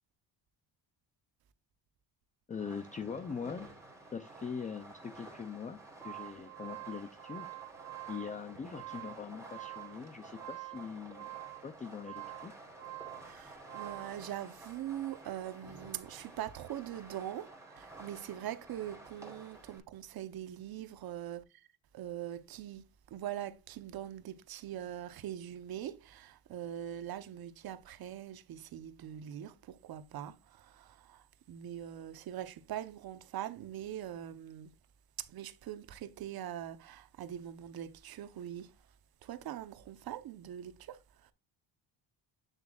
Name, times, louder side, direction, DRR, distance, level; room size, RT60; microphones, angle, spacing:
voice 1, 2.5-3.7 4.1-5.8 6.0-7.5 8.1-11.3 11.6-12.5, left 6 dB, 20° left, 0.5 m, -42 dB
Fireworks, 2.5-19.8, right 2 dB, 5° right, 2.8 m, -52 dB
sound 1, 5.7-14.2, right 18 dB, 35° right, 1.0 m, -47 dB
voice 2, 13.2-21.7 21.9-34.7 35.2-38.7 39.2-41.3, right 11 dB, 55° right, 0.9 m, -42 dB
8.2 x 7.2 x 2.4 m
cardioid pair, 125°, 44 cm